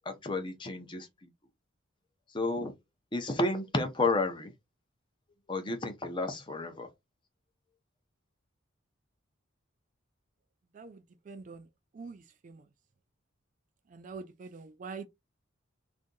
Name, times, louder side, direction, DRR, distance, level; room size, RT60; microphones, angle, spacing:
voice 1, 0.1-1.1 2.3-2.7 3.1-4.5 5.5-6.9, left 2 dB, 20° left, 0.6 m, -31 dB
voice 2, 10.7-11.7 11.9-12.6 13.9-15.1, right 4 dB, 35° right, 0.3 m, -45 dB
2.6 x 2.6 x 3.7 m
head